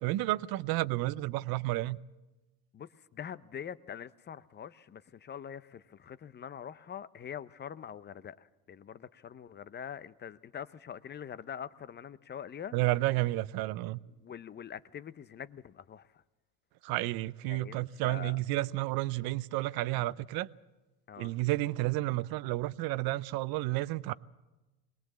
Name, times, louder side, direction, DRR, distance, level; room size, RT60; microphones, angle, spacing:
voice 1, 0.0-2.0 12.7-14.0 16.8-20.5 21.2-24.1, right 18 dB, 55° right, 0.7 m, -31 dB
voice 2, 2.7-12.7 14.2-16.2 17.5-18.4 21.1-21.3, left 8 dB, 25° left, 0.6 m, -44 dB
21.0 x 19.5 x 7.5 m
supercardioid pair, 90°, 43 cm